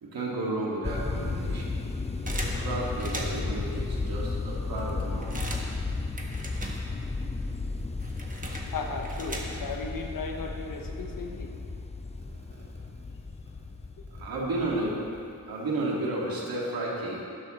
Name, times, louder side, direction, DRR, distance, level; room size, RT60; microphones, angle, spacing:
voice 1, 0.0-1.9 2.2-5.4 12.3-12.8 14.1-15.0 15.5-17.3, right 2 dB, 90° right, -4 dB, 2.1 m, -33 dB
sound 1, 0.8-15.4, left 3 dB, 20° left, 0.5 m, -34 dB
sound 2, 2.3-3.6 4.2-4.3 4.5-7.2 7.5-9.9, right 1 dB, 20° right, 1.5 m, -39 dB
voice 2, 8.5-11.5, left 4 dB, 70° left, 2 dB, 1.2 m, -36 dB
12.5 x 10.5 x 3.1 m, 2.6 s
cardioid pair, 70°, 35 cm